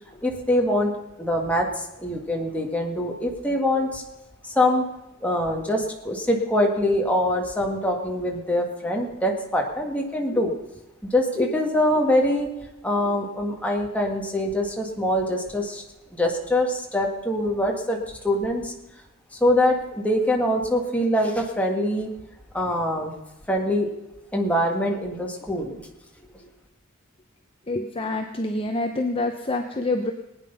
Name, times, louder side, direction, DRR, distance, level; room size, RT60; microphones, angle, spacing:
voice 1, 0.2-0.9 1.2-4.0 4.5-4.8 5.2-10.6 11.0-12.5 12.8-15.8 16.1-18.7 19.4-22.1 22.5-23.1 23.5-23.9 24.3-25.8, left 1 dB, 5° left, 0 dB, 1.9 m, -24 dB
voice 2, 27.7-30.1, left 2 dB, 25° left, 5 dB, 0.8 m, -26 dB
19.5 x 9.6 x 5.6 m, 0.97 s
head